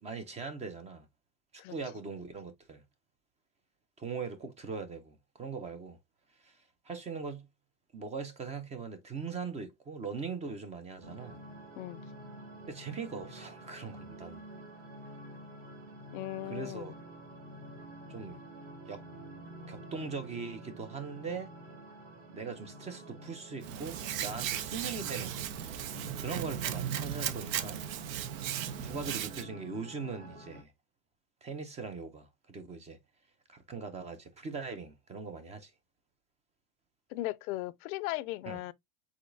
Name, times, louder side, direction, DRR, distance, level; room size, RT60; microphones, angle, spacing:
voice 1, 0.0-1.1 1.5-2.8 4.0-6.0 6.4-6.6 6.8-7.5 7.9-11.4 12.7-14.4 16.5-16.9 18.1-18.4 18.8-19.0 19.7-21.5 22.3-25.7 26.2-27.8 28.8-30.7 31.4-33.0 33.5-35.7 38.4-38.6, right 5 dB, 15° right, 0.5 m, -41 dB
sound 1, 11.0-30.6, right 1 dB, 55° right, 2.2 m, -48 dB
voice 2, 16.1-16.9 37.1-38.7, left 17 dB, 80° left, 0.6 m, -37 dB
Hands, 23.6-29.4, right 10 dB, 75° right, 0.9 m, -36 dB
5.0 x 3.9 x 2.5 m
supercardioid pair, 160°, 42 cm